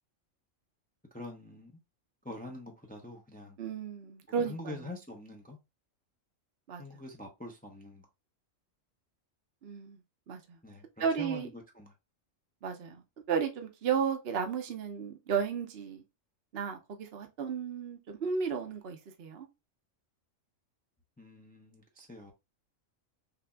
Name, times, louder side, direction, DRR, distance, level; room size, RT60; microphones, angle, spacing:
voice 1, 1.1-1.8 2.2-3.6 4.3-5.6 6.8-8.1 10.6-11.9 21.2-22.3, left 1 dB, 10° left, 0.7 m, -45 dB
voice 2, 3.6-4.8 6.7-6.8 9.6-10.0 10.3-10.6 11.0-11.5 12.6-16.0 16.5-19.5, right 6 dB, 55° right, 1.0 m, -34 dB
5.9 x 2.7 x 2.3 m
omnidirectional pair, 1.3 m